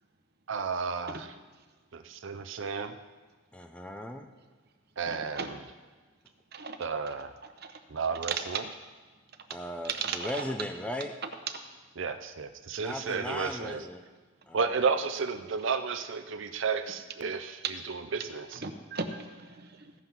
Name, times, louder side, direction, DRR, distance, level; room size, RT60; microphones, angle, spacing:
voice 1, 0.5-1.3 1.9-3.0 5.0-5.5 6.8-7.3 7.9-8.6 12.0-13.9 14.5-18.6, right 5 dB, 65° right, 9 dB, 0.5 m, -32 dB
voice 2, 3.5-4.3 9.5-11.1 12.8-14.0 14.5-14.7, left 1 dB, 5° left, 6 dB, 0.5 m, -37 dB
voice 3, 5.1-5.5 6.5-6.9 7.6-7.8 9.8-10.5 18.6-19.9, right 4 dB, 50° right, 6 dB, 0.9 m, -37 dB
15.5 x 5.6 x 5.9 m, 1.4 s
head